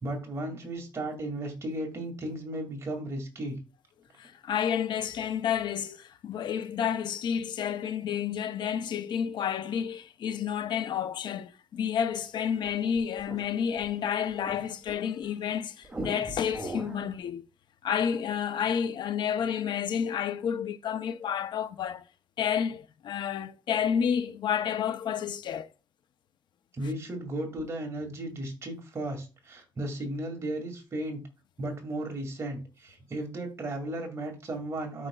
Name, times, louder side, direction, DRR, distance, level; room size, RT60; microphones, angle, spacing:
voice 1, 0.0-3.6 26.7-31.2 31.6-35.1, right 1 dB, 35° right, 2.2 m, -35 dB
voice 2, 4.2-17.4 17.8-22.0 22.4-25.7, left 8 dB, 70° left, 0.6 m, -30 dB
sound 1, 12.3-15.4 15.8-17.1, right 1 dB, 10° right, 2.4 m, -41 dB
13.5 x 5.1 x 2.3 m
wide cardioid pair, 150°, 8 cm